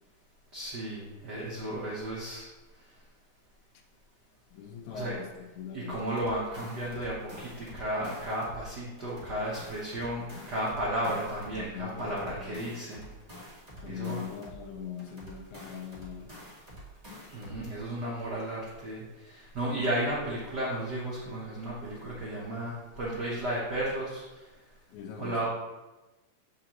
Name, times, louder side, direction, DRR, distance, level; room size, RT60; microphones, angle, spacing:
voice 1, 0.5-2.5 4.9-5.1 5.7-13.1 13.8-14.2 17.3-24.2 25.2-25.5, right 1 dB, 75° right, -6 dB, 0.9 m, -34 dB
voice 2, 4.5-6.0 11.0-11.3 11.5-12.8 13.8-16.3 24.9-25.5, left 8 dB, 80° left, 4 dB, 2.0 m, -41 dB
sound 1, 6.0-8.6 9.0-11.6 12.0-14.6 15.0-17.6, equal, 55° right, 0.4 m, -48 dB
6.7 x 5.0 x 2.9 m, 1.1 s
omnidirectional pair, 3.4 m